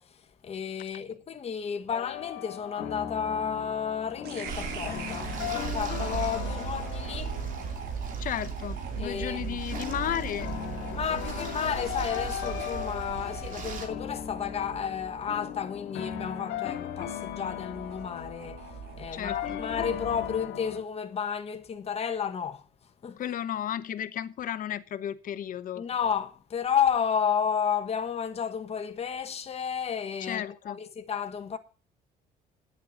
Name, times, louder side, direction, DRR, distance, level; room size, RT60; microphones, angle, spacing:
voice 1, 0.0-7.4 9.0-9.6 10.9-18.7 19.0-22.6 23.0-23.2 25.8-31.6, left 7 dB, 35° left, 1.2 m, -32 dB
sound 1, 1.9-20.8, left 10 dB, 80° left, 2.5 m, -38 dB
sound 2, 4.2-20.4, right 7 dB, 70° right, 1.7 m, -40 dB
sound 3, 4.4-13.9, right 5 dB, 50° right, 2.4 m, -39 dB
voice 2, 8.2-10.5 19.1-19.6 23.2-25.8 30.2-30.8, left 10 dB, 55° left, 0.9 m, -34 dB
9.6 x 7.6 x 6.6 m
cardioid pair, 110°, 17 cm